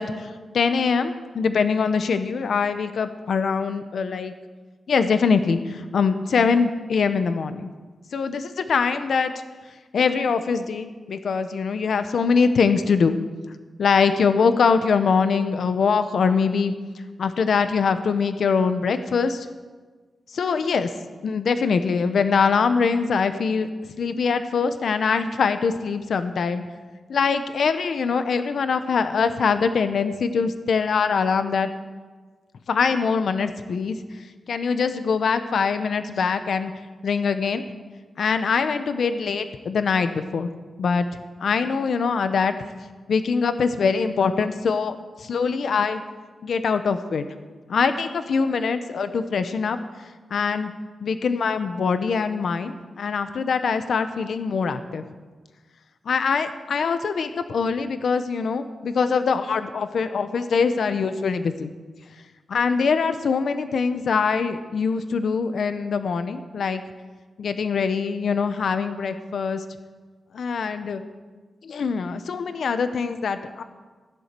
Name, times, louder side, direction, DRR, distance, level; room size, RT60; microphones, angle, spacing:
voice 1, 0.0-4.3 4.9-7.7 8.1-9.3 9.9-13.2 13.8-16.7 17.2-19.5 20.3-20.9 21.2-23.7 24.0-26.6 27.1-31.7 32.7-34.0 34.5-36.7 37.0-37.6 38.2-40.5 40.8-41.1 41.4-42.5 43.1-46.0 46.4-47.3 47.7-49.8 50.3-50.7 51.0-55.0 56.0-61.7 62.5-66.8 67.4-69.6 70.3-71.0 71.6-73.6, left 5 dB, 75° left, 10 dB, 1.0 m, -23 dB
15.5 x 11.0 x 6.8 m, 1.4 s
wide cardioid pair, 135°, 0 cm